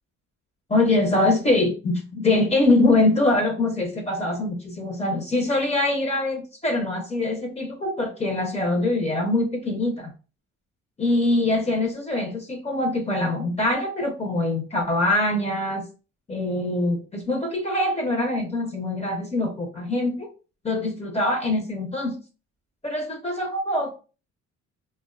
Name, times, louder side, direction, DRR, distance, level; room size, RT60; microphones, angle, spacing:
voice 1, 0.7-10.1 11.0-15.9 16.3-20.3 20.6-22.2 22.8-23.9, left 2 dB, 20° left, 3 dB, 0.5 m, -23 dB
2.4 x 2.1 x 2.3 m, 0.34 s
cardioid pair, 90°, 30 cm